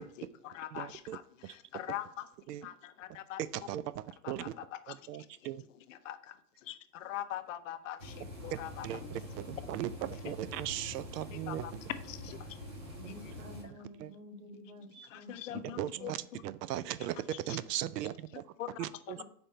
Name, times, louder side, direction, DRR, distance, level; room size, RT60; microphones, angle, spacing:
voice 1, 0.0-2.3 2.6-3.7 4.1-9.5 10.1-10.3 11.3-12.5 13.1-13.3 13.6-13.9 15.1-16.4 17.0-17.8 18.3-19.2, left 12 dB, 55° left, 11 dB, 0.6 m, -44 dB
voice 2, 0.7-1.2 1.4-1.5 2.5-2.7 3.4-4.5 4.9-5.6 8.8-11.8 14.0-14.1 15.8-16.2 16.4-18.4 18.8-19.2, right 12 dB, 85° right, 16 dB, 0.5 m, -38 dB
sound 1, 8.0-13.6, left 1 dB, 20° right, 0.3 m, -45 dB
voice 3, 13.0-16.2 19.1-19.2, right 1 dB, 65° right, 6 dB, 1.5 m, -51 dB
5.2 x 4.3 x 4.4 m, 0.67 s
supercardioid pair, 160°, 47 cm